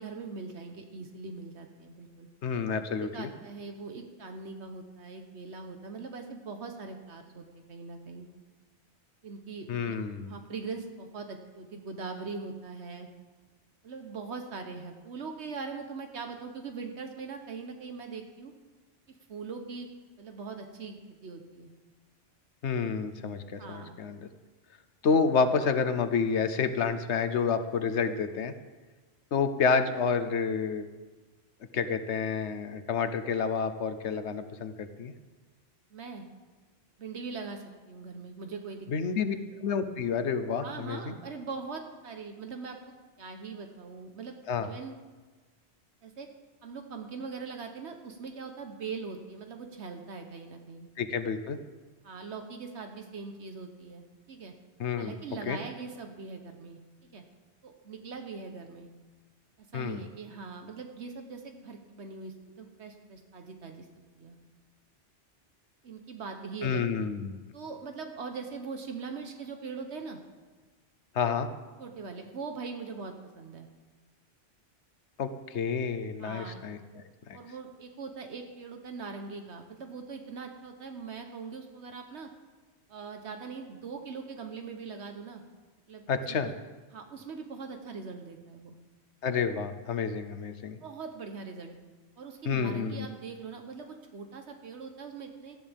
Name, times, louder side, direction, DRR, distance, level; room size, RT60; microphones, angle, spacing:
voice 1, 0.0-2.3 2.7-2.9 3.1-8.3 9.2-13.1 13.8-18.5 19.1-19.9 20.2-21.0 21.2-21.7 23.6-24.0 25.0-25.3 35.9-36.3 37.0-38.9 39.2-39.4 40.6-42.8 43.2-44.3 44.6-44.9 46.0-46.3 46.6-50.9 52.0-54.5 55.0-56.8 57.1-57.2 57.6-58.9 59.6-63.9 64.2-64.4 65.8-67.1 67.5-70.2 71.8-73.7 76.2-76.6 77.3-82.3 82.9-85.4 85.9-86.4 86.9-88.8 90.8-91.7 92.2-95.6, right 4 dB, 80° right, 5 dB, 1.3 m, -41 dB
voice 2, 2.4-3.3 9.7-10.4 22.6-24.3 25.0-28.5 29.3-30.9 31.7-35.1 38.9-41.2 44.5-44.7 51.0-51.6 54.8-55.1 55.5-55.6 59.7-60.0 66.6-67.4 71.1-71.5 75.2-76.8 77.3-77.4 86.1-86.5 89.2-90.8 92.4-93.1, left 5 dB, 85° left, 10 dB, 1.2 m, -29 dB
18.0 x 13.5 x 3.5 m, 1.3 s
omnidirectional pair, 1.1 m